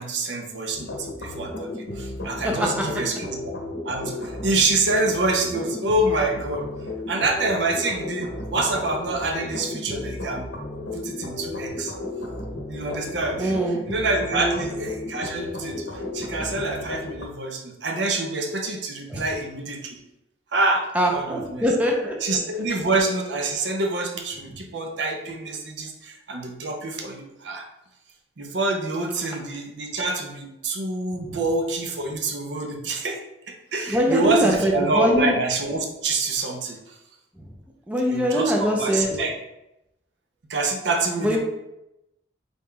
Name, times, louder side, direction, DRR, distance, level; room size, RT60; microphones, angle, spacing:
voice 1, 0.0-3.5 3.8-6.7 7.1-10.5 10.9-11.9 12.7-13.6 13.9-20.0 20.5-21.7 22.2-27.7 28.4-33.2 33.5-37.0 38.0-39.3 40.5-41.4, right 2 dB, 65° right, 3 dB, 0.6 m, -26 dB
sound 1, 0.7-17.3, left 2 dB, 90° left, 0.7 m, -34 dB
voice 2, 13.4-13.9 14.3-14.6 19.1-19.2 20.9-22.6 31.3-31.4 33.9-35.3 37.4-37.5 37.9-39.1 41.2-41.4, equal, 10° right, -1 dB, 0.5 m, -23 dB
3.9 x 2.3 x 3.6 m, 0.89 s
head